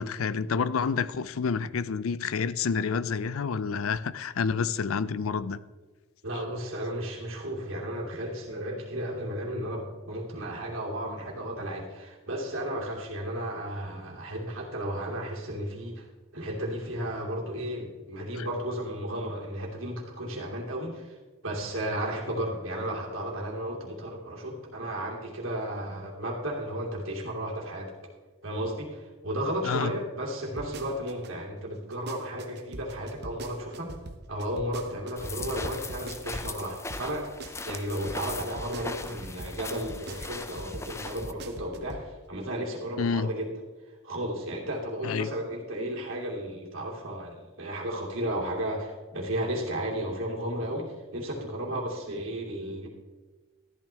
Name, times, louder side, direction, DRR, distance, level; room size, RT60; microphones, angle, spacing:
voice 1, 0.0-5.6 18.4-18.5 29.6-29.9 43.0-43.3 45.0-45.3, left 5 dB, 90° left, 0.5 m, -29 dB
voice 2, 6.2-16.1 16.3-21.2 21.4-27.9 28.4-33.9 34.3-37.3 37.7-43.5 44.0-52.9, right 1 dB, 80° right, 2.8 m, -34 dB
sound 1, 30.6-31.3 31.7-36.6 36.9-42.1 42.4-42.5, right 2 dB, 50° right, 0.9 m, -42 dB
sound 2, 35.2-41.3, left 3 dB, 15° left, 0.4 m, -39 dB
13.5 x 12.0 x 3.4 m
head